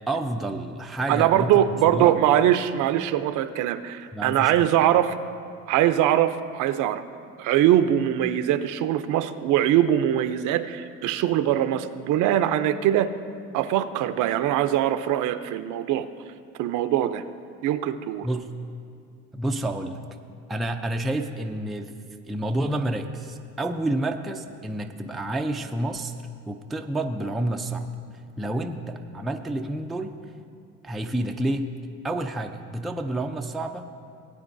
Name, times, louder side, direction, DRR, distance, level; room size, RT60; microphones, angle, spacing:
voice 1, 0.1-1.6 1.9-2.2 4.1-4.7 18.2-18.5 19.3-20.0 20.5-21.9 22.3-26.1 26.5-27.9 28.4-30.2 30.8-31.7 32.0-34.1, right 1 dB, ahead, 4 dB, 0.3 m, -29 dB
voice 2, 1.1-5.2 5.7-7.0 7.4-13.1 13.5-16.1 16.6-17.2 17.6-18.3, right 11 dB, 70° right, 11 dB, 0.6 m, -22 dB
19.0 x 8.9 x 2.6 m, 2.3 s
cardioid pair, 125°, 32 cm